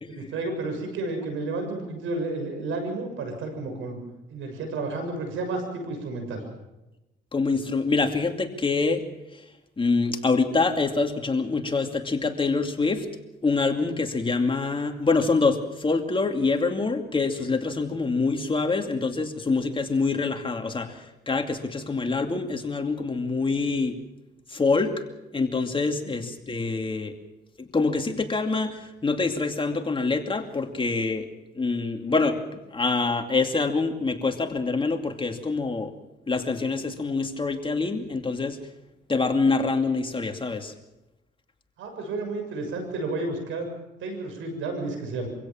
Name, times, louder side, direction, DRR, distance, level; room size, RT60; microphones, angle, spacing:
voice 1, 0.1-4.0 4.3-6.4 26.0-26.1 41.8-43.7 44.0-45.3, right 3 dB, 80° right, 5 dB, 6.8 m, -31 dB
voice 2, 7.3-9.0 9.8-13.1 13.4-24.0 24.5-24.9 25.3-27.1 27.6-31.3 31.6-32.4 32.7-35.9 36.3-38.6 39.1-40.7, left 3 dB, 25° left, 5 dB, 2.6 m, -25 dB
25.5 x 16.5 x 7.3 m, 0.98 s
cardioid pair, 90°, 20 cm